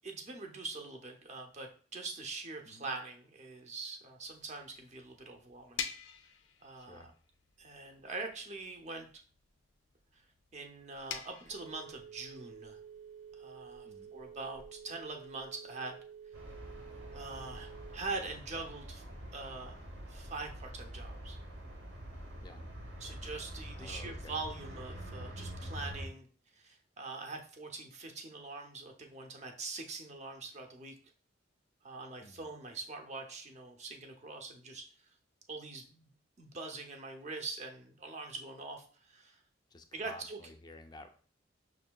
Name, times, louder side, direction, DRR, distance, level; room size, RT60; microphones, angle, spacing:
voice 1, 0.0-5.8 6.6-7.1 7.6-9.1 10.1-10.2 10.5-12.8 13.3-16.0 17.1-19.0 19.3-19.7 20.1-21.4 23.0-26.3 26.5-31.0 31.8-35.1 35.5-39.4 39.9-40.4, right 3 dB, 40° right, 4 dB, 0.6 m, -43 dB
sound 1, 4.2-15.4, left 7 dB, 85° left, 0.4 m, -49 dB
voice 2, 6.8-7.1 13.8-14.1 22.4-22.6 23.7-24.4 32.2-32.5 39.7-41.1, left 2 dB, 20° left, 6 dB, 0.4 m, -52 dB
Telephone, 11.3-18.3, right 7 dB, 85° right, 0.5 m, -51 dB
sound 2, 16.3-26.1, equal, 70° right, 0.9 m, -46 dB
6.0 x 2.7 x 2.2 m, 0.43 s
head